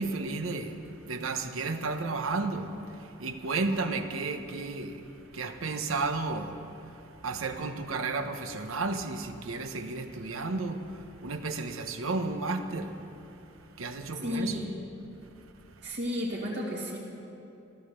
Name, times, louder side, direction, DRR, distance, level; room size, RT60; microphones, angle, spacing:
voice 1, 0.0-5.0 5.3-6.6 6.9-7.0 7.2-13.0 13.8-14.7, right 3 dB, 85° right, 7 dB, 1.0 m, -33 dB
voice 2, 14.2-14.8 15.8-17.0, left 1 dB, 55° right, -4 dB, 2.3 m, -32 dB
15.0 x 13.0 x 6.8 m, 2.8 s
head